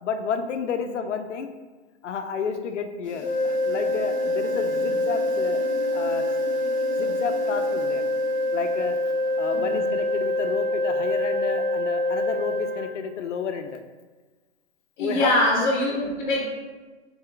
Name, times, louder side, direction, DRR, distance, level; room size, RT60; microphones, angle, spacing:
voice 1, 0.0-1.5 2.0-5.6 5.9-6.2 7.0-8.1 8.5-9.0 9.4-13.8 15.0-15.7, left 6 dB, 80° left, 7 dB, 0.6 m, -31 dB
sound 1, 3.0-10.5, equal, 30° right, 0.5 m, -41 dB
sound 2, 3.2-12.9, left 1 dB, 25° left, 0.6 m, -25 dB
voice 2, 15.0-16.5, left 1 dB, 45° left, -1 dB, 1.2 m, -23 dB
4.0 x 3.5 x 3.4 m, 1.3 s
hypercardioid pair, 155°, 36 cm